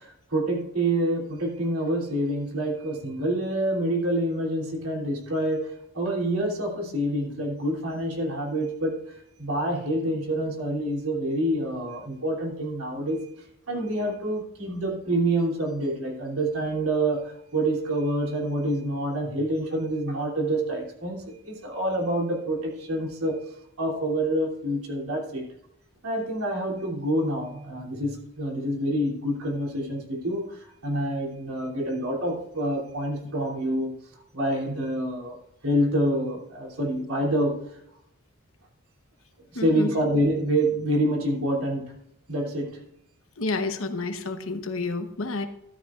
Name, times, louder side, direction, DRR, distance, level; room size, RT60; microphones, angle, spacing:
voice 1, 0.0-13.2 13.7-23.4 23.8-25.5 26.0-33.9 34.3-35.4 35.6-37.6 39.5-41.9 42.3-42.8, right 1 dB, 80° right, -2 dB, 3.1 m, -27 dB
voice 2, 39.5-39.9 43.4-45.5, left 3 dB, 65° left, 7 dB, 1.0 m, -29 dB
13.5 x 13.0 x 2.5 m, 0.78 s
head